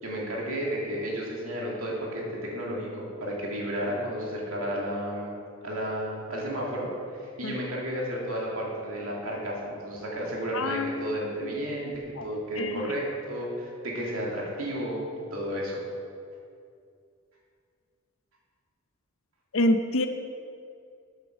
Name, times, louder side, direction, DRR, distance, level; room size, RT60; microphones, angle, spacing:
voice 1, 0.0-6.9 7.2-15.0 15.3-15.8, equal, 65° right, -3 dB, 2.5 m, -32 dB
voice 2, 10.5-11.5 12.2-12.3 12.6-12.9 19.5-20.1, left 1 dB, 65° left, 6 dB, 0.7 m, -27 dB
8.4 x 8.2 x 6.4 m, 2.4 s
head